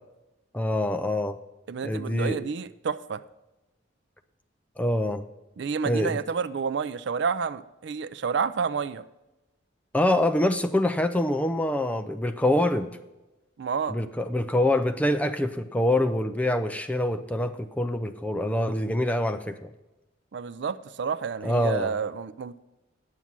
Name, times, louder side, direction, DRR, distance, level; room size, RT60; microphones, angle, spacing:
voice 1, 0.5-1.4 1.8-2.4 4.8-5.3 5.8-6.2 9.9-12.9 13.9-19.7 21.4-21.9, left 1 dB, 5° left, 8 dB, 0.4 m, -25 dB
voice 2, 1.7-3.2 5.6-9.0 13.6-14.0 20.3-22.6, right 6 dB, 60° right, 15 dB, 0.4 m, -29 dB
9.4 x 7.3 x 5.9 m, 1.0 s
head